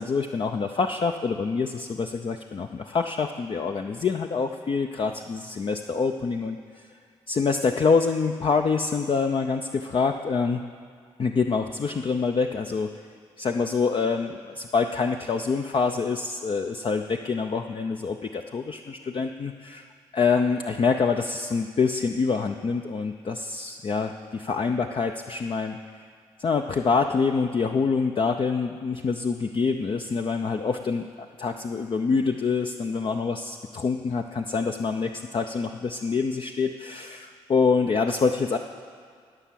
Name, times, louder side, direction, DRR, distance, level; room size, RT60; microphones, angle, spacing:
voice 1, 0.0-6.9 7.3-10.6 11.2-12.9 13.4-19.9 20.1-25.8 26.4-38.6, left 5 dB, 45° left, 5 dB, 0.6 m, -26 dB
14.5 x 5.9 x 7.5 m, 2.1 s
hypercardioid pair, 40°, 12 cm